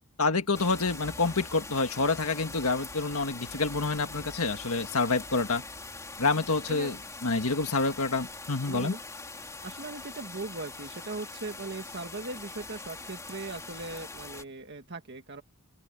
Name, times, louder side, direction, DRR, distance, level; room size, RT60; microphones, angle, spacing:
voice 1, 0.2-5.6 6.2-6.9 7.2-8.9, left 3 dB, 75° left, 1.8 m, -27 dB
sound 1, 0.5-14.4, left 3 dB, 15° left, 3.4 m, -43 dB
voice 2, 8.7-9.0 9.4-15.4, right 2 dB, 50° right, 1.6 m, -39 dB
open air
head